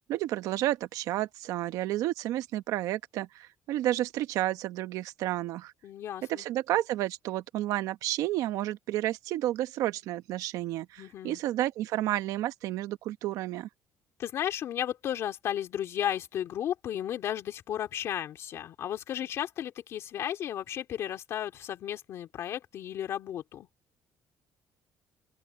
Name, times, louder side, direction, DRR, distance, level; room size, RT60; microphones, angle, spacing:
voice 1, 0.1-5.7 6.3-13.7, right 14 dB, 85° right, 1.1 m, -31 dB
voice 2, 5.8-6.4 11.0-11.4 14.2-23.7, left 10 dB, 50° left, 3.0 m, -34 dB
open air
cardioid pair, 175°, 6 cm